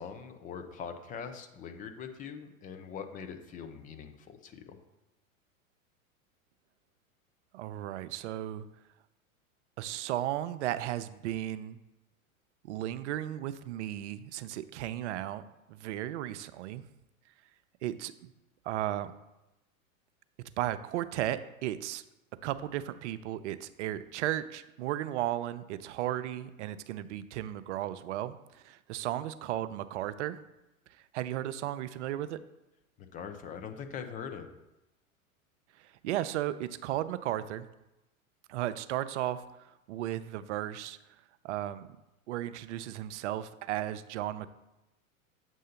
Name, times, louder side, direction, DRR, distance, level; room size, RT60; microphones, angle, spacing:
voice 1, 0.0-4.8 33.0-34.5, left 6 dB, 20° left, 7 dB, 0.5 m, -42 dB
voice 2, 7.5-8.7 9.8-11.8 12.6-16.8 17.8-18.1 18.7-19.1 20.6-22.0 22.4-30.4 31.1-32.4 35.8-37.7 38.5-41.0 41.4-41.9 42.3-44.5, right 13 dB, 55° right, 13 dB, 0.5 m, -35 dB
7.4 x 2.7 x 5.7 m, 0.94 s
hypercardioid pair, 100°, 42 cm